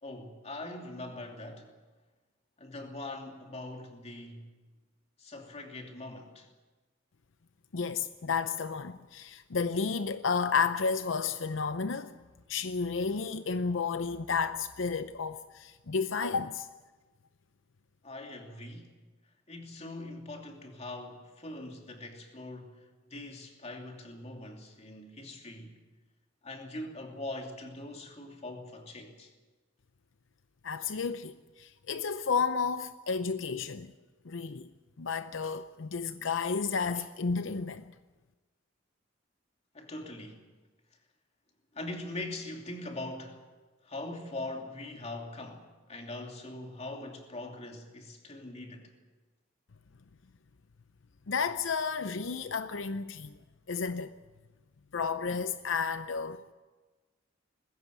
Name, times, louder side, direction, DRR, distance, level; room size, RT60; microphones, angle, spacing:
voice 1, 0.0-1.7 2.6-4.6 5.2-6.5 18.0-18.9 19.5-25.8 26.4-29.3 39.7-40.4 41.7-43.5 43.8-48.9, left 2 dB, 35° left, 2.8 m, -42 dB
voice 2, 7.7-12.2 12.5-16.7 30.6-33.9 34.2-34.7 35.0-37.9 51.3-53.4 53.7-54.1 54.9-56.5, left 5 dB, 80° left, 0.7 m, -32 dB
20.5 x 16.0 x 9.3 m
head